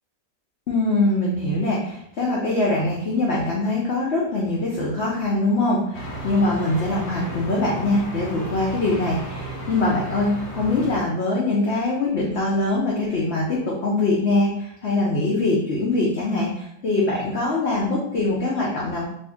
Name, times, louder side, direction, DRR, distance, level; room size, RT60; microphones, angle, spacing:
voice 1, 0.7-5.8 6.2-19.1, left 2 dB, 90° left, -4 dB, 0.5 m, -23 dB
sound 1, 5.9-11.0, right 2 dB, 70° left, 1.3 m, -34 dB
2.7 x 2.7 x 3.4 m, 0.74 s
omnidirectional pair, 1.9 m